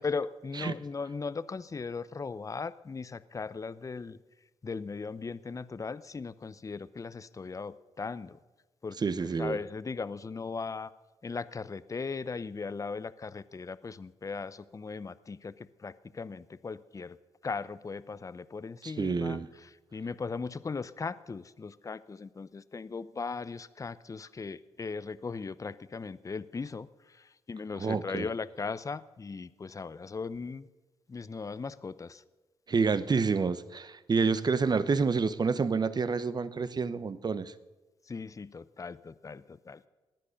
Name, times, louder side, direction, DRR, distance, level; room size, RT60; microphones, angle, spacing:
voice 1, 0.0-4.2 4.6-8.4 8.8-10.9 11.2-17.2 17.4-30.7 31.1-32.2 38.1-39.8, left 4 dB, 30° left, 15 dB, 0.7 m, -38 dB
voice 2, 9.0-9.6 18.8-19.5 27.8-28.3 32.7-37.5, right 5 dB, 40° right, 15 dB, 1.0 m, -28 dB
18.0 x 10.0 x 6.5 m, 1.1 s
supercardioid pair, 55°, 11 cm